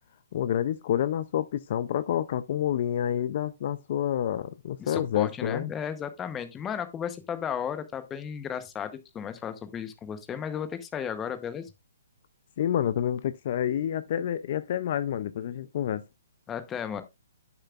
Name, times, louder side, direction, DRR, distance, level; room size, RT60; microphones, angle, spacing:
voice 1, 0.3-5.7 12.6-16.0, left 10 dB, 40° left, 0.4 m, -28 dB
voice 2, 4.8-11.7 16.5-17.0, left 8 dB, 10° left, 0.8 m, -34 dB
9.7 x 6.8 x 2.4 m
hypercardioid pair, 165°, 0 cm